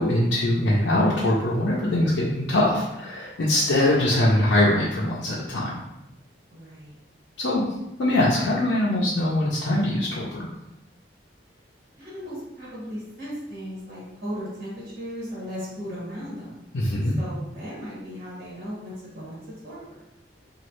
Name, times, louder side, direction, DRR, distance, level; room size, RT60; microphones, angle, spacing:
voice 1, 0.0-5.8 7.4-7.6 8.0-10.5 16.7-17.2, left 1 dB, 80° left, -6 dB, 0.5 m, -22 dB
voice 2, 6.5-7.0 12.0-16.6 17.2-19.4 19.6-20.0, equal, 55° right, -8 dB, 1.3 m, -36 dB
3.0 x 2.4 x 3.0 m, 0.91 s
head